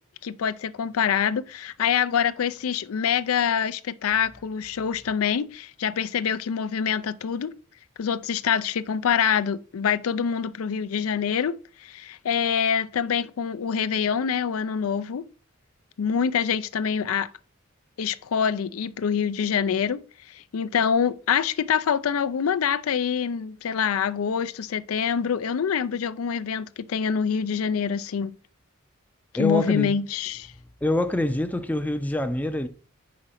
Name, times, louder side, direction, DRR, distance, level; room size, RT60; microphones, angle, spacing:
voice 1, 0.2-7.5 8.0-15.3 16.0-17.3 18.0-28.4 29.4-30.5, left 7 dB, 85° left, 0.4 m, -25 dB
voice 2, 29.3-29.9 30.8-32.7, left 1 dB, 5° left, 0.4 m, -25 dB
5.0 x 4.8 x 5.7 m
head